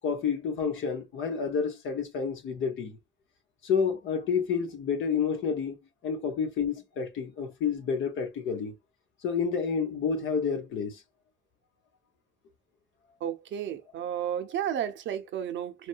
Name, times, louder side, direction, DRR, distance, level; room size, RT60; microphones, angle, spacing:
voice 1, 0.0-3.0 3.6-5.8 6.0-8.7 9.2-11.0, left 6 dB, 75° left, 0.9 m, -29 dB
voice 2, 13.2-15.9, right 9 dB, 70° right, 0.6 m, -32 dB
3.2 x 2.3 x 2.4 m
cardioid pair, 90°, 20 cm